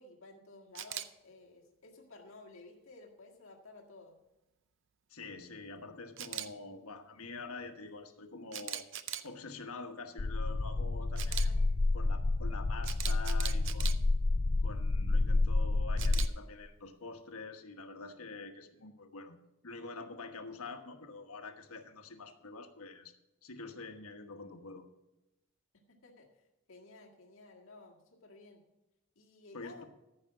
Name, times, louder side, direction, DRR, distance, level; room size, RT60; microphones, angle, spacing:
voice 1, 0.0-4.2 11.2-11.6 25.9-28.6 29.2-29.8, left 3 dB, 65° left, 0 dB, 1.8 m, -55 dB
Camera, 0.8-1.1 6.2-6.5 8.5-9.3 11.2-11.5 12.8-13.9 16.0-16.3, right 10 dB, 55° right, 0.6 m, -39 dB
voice 2, 5.1-8.9 9.2-11.5 11.9-13.9 14.6-19.4 19.6-23.1 23.4-24.9 29.5-29.8, left 3 dB, 80° left, 6 dB, 1.2 m, -46 dB
sound 1, 10.2-16.3, left 2 dB, 30° left, 0.3 m, -29 dB
14.0 x 5.9 x 6.0 m, 0.96 s
head